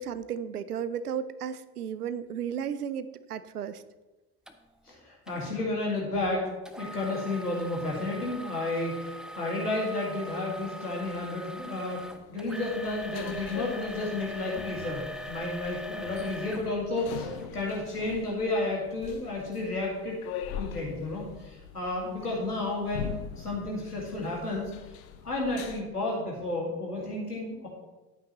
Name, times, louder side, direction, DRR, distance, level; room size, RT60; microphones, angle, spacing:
voice 1, 0.0-3.8, right 8 dB, 80° right, 14 dB, 0.6 m, -34 dB
sound 1, 4.5-4.6 5.3-5.5 6.7-17.5 18.1-18.2 18.8-18.9, equal, ahead, 0.8 m, -42 dB
voice 2, 4.9-6.5 6.8-20.2 20.6-24.7 25.2-27.7, left 2 dB, 85° left, -3 dB, 2.4 m, -32 dB
sound 2, 11.6-25.8, left 9 dB, 65° left, 0.8 m, -43 dB
11.5 x 8.8 x 3.2 m, 1.2 s
figure-of-eight pair, 60°, 45 cm